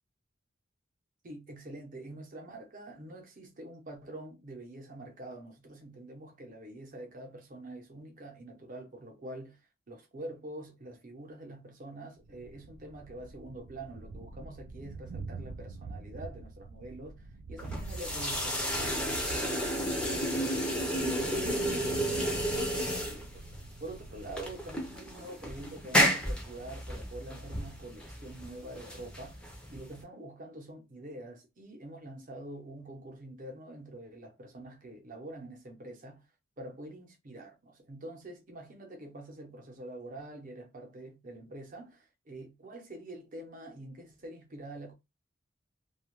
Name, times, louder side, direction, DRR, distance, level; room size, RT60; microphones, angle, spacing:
voice 1, 1.2-36.3 36.6-44.9, right 1 dB, 40° right, 0.7 m, -46 dB
Thunder, 12.2-24.9, right 3 dB, 90° right, 0.3 m, -45 dB
sound 1, 17.6-30.0, equal, 5° left, 0.5 m, -32 dB
2.3 x 2.1 x 3.0 m
head